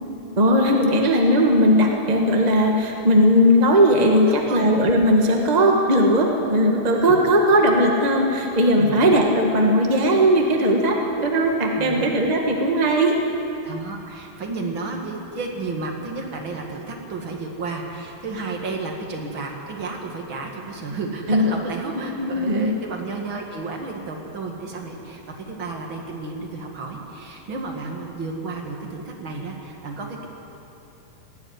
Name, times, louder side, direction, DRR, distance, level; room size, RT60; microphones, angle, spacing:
voice 1, 0.4-13.2 21.3-21.5 22.2-22.7, equal, 75° right, 1 dB, 0.4 m, -18 dB
voice 2, 4.2-4.7 8.8-8.9 11.7-12.1 13.6-30.3, right 3 dB, 40° right, 1 dB, 2.3 m, -32 dB
18.5 x 14.5 x 9.7 m, 2.8 s
omnidirectional pair, 4.1 m